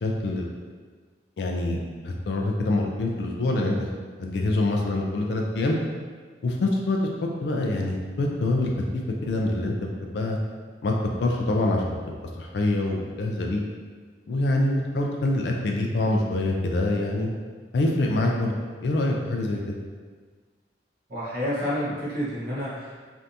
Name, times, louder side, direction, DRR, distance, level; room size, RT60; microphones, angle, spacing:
voice 1, 0.0-0.5 1.4-1.8 2.0-3.9 4.2-5.8 6.4-7.0 7.4-8.7 9.2-10.4 10.8-10.9 11.2-12.0 12.4-13.6 14.3-17.3 17.7-18.6 18.8-19.8, left 2 dB, 65° left, 0 dB, 0.3 m, -25 dB
voice 2, 21.1-23.0, equal, 55° right, -10 dB, 1.0 m, -29 dB
3.3 x 2.6 x 2.6 m, 1.5 s
head